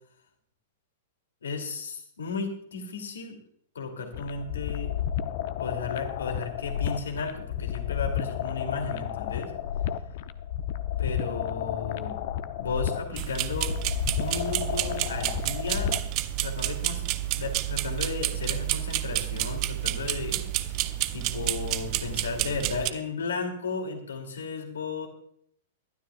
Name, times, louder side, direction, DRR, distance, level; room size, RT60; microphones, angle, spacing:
voice 1, 1.4-3.4 3.7-4.9 5.6-9.5 11.0-12.2 12.6-13.8 14.2-15.9 16.4-17.0 17.3-25.1, left 4 dB, 70° left, 4 dB, 2.6 m, -34 dB
sound 1, 4.1-16.1, left 10 dB, 50° left, 0.7 m, -32 dB
sound 2, 13.2-22.9, right 15 dB, 40° right, 0.7 m, -30 dB
22.0 x 12.5 x 2.4 m, 0.65 s
figure-of-eight pair, 105°, 0 cm